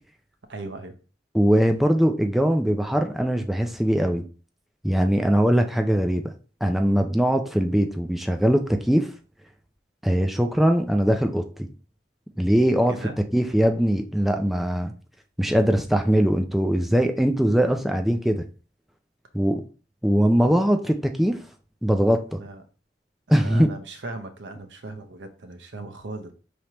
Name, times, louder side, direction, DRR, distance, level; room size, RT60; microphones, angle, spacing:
voice 1, 0.5-0.9 12.9-13.2 22.4-22.6 23.3-26.3, right 2 dB, 80° right, 7 dB, 0.7 m, -37 dB
voice 2, 1.3-4.2 4.8-6.3 6.6-9.1 10.0-11.7 12.4-12.9 13.3-14.9 15.4-18.4 19.3-19.6 20.0-21.4 21.8-22.4 23.3-23.7, equal, ahead, 5 dB, 0.3 m, -21 dB
5.5 x 3.2 x 2.9 m, 0.38 s
head